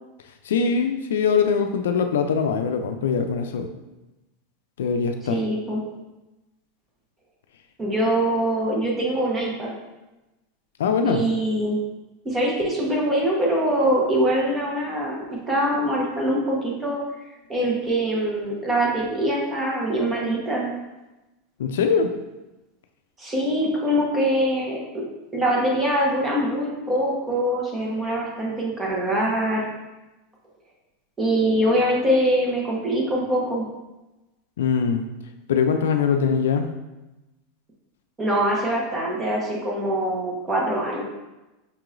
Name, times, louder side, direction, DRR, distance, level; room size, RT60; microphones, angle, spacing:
voice 1, 0.4-3.7 4.8-5.4 10.8-11.2 21.6-22.1 34.6-35.0 35.5-36.7, left 6 dB, 90° left, 6 dB, 0.3 m, -22 dB
voice 2, 5.3-5.8 7.8-9.7 11.0-11.8 12.2-17.0 17.5-20.7 23.2-25.0 25.3-29.7 31.2-33.7 38.2-41.0, right 1 dB, 20° right, -3 dB, 1.1 m, -23 dB
5.4 x 2.9 x 2.5 m, 1.0 s
supercardioid pair, 120°, 0 cm